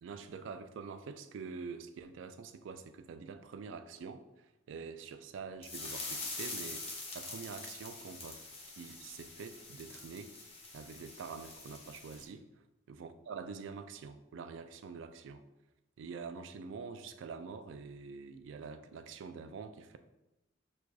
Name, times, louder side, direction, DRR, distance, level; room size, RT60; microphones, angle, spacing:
voice 1, 0.0-8.5 8.8-10.4 10.7-12.5 12.9-15.4 16.0-20.0, right 5 dB, 75° right, 9 dB, 0.3 m, -46 dB
sound 1, 5.6-12.3, left 3 dB, 30° left, 0.6 m, -45 dB
6.0 x 2.5 x 2.3 m, 0.96 s
head